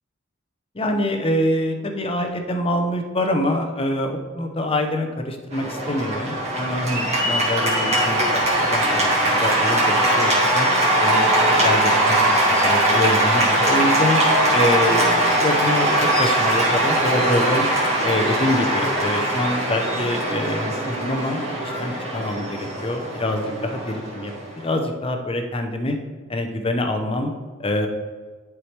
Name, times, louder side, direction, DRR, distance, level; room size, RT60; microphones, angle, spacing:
voice 1, 0.7-8.4 8.7-10.7 11.0-11.4 11.6-14.2 14.5-17.7 18.0-26.0 26.3-27.3 27.6-27.9, left 1 dB, 25° left, 5 dB, 0.7 m, -25 dB
Cheering / Applause, 5.5-24.8, right 1 dB, 30° right, 1.8 m, -20 dB
11.0 x 4.7 x 3.3 m, 1.4 s
head